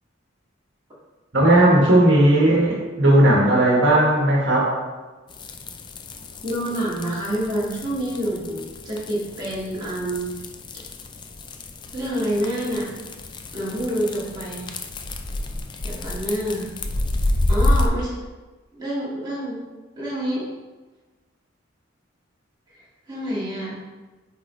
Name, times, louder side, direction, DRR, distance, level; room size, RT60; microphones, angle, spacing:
voice 1, 1.3-4.7, right 1 dB, 65° right, -4 dB, 1.3 m, -16 dB
sound 1, 5.3-17.9, left 1 dB, 25° left, 0.4 m, -29 dB
voice 2, 6.4-10.3 11.9-12.9 13.5-14.7 15.8-16.7 17.5-18.1 18.7-19.6 20.0-20.5 23.1-23.8, equal, 20° right, -8 dB, 1.9 m, -27 dB
8.5 x 3.8 x 3.1 m, 1.2 s
head